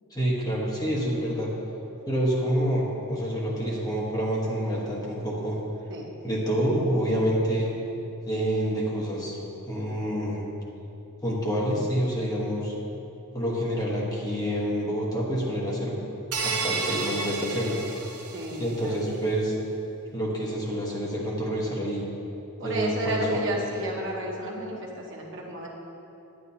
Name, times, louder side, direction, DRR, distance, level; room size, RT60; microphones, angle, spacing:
voice 1, 0.1-1.5 2.1-5.6 6.2-7.7 8.2-10.4 11.2-12.7 13.3-16.0 16.4-17.8 18.6-19.5 20.1-22.0 22.6-23.5, equal, 15° left, -4 dB, 1.3 m, -27 dB
sound 1, 16.3-18.8, right 4 dB, 80° right, 0.9 m, -31 dB
voice 2, 18.3-19.0 22.6-25.7, right 1 dB, 55° right, -3 dB, 1.2 m, -32 dB
10.0 x 9.7 x 2.8 m, 2.9 s
head